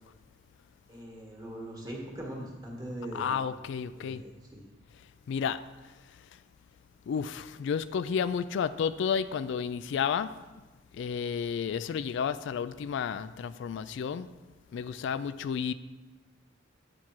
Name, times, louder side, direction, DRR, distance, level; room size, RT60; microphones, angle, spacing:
voice 1, 0.9-3.4 4.0-4.7, right 1 dB, 20° right, -2 dB, 1.8 m, -41 dB
voice 2, 3.1-4.2 5.3-5.6 7.1-10.3 10.9-14.3 14.7-15.7, left 7 dB, 70° left, 14 dB, 0.3 m, -31 dB
9.3 x 4.3 x 6.1 m, 1.2 s
head